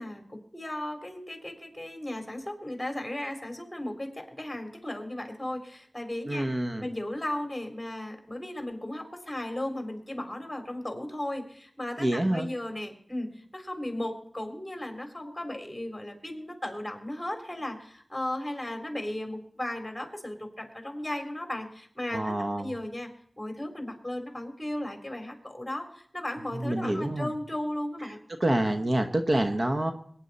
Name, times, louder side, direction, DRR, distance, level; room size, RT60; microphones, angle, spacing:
voice 1, 0.0-6.5 6.8-23.1 23.4-28.2, left 1 dB, 15° left, 4 dB, 3.6 m, -36 dB
voice 2, 6.3-6.9 12.0-12.5 22.1-22.7 26.6-27.3 28.4-29.9, right 1 dB, 45° right, 6 dB, 1.1 m, -27 dB
22.0 x 10.0 x 4.2 m, 0.62 s
cardioid pair, 45°, 0 cm